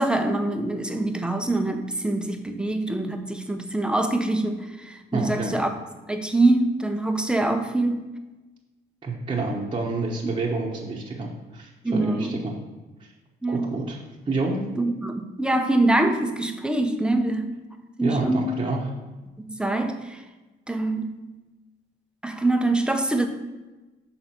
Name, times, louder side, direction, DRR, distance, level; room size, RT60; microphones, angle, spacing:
voice 1, 0.0-5.7 6.1-8.1 11.8-12.4 13.4-13.8 14.8-17.5 18.0-18.6 19.5-20.2 20.7-21.2 22.2-23.3, right 2 dB, 5° right, 6 dB, 0.7 m, -24 dB
voice 2, 5.1-5.6 9.0-12.5 13.5-14.0 14.3-14.6 18.0-18.9, right 3 dB, 25° right, -3 dB, 1.0 m, -28 dB
6.1 x 3.9 x 5.8 m, 1.1 s
cardioid pair, 90°, 20 cm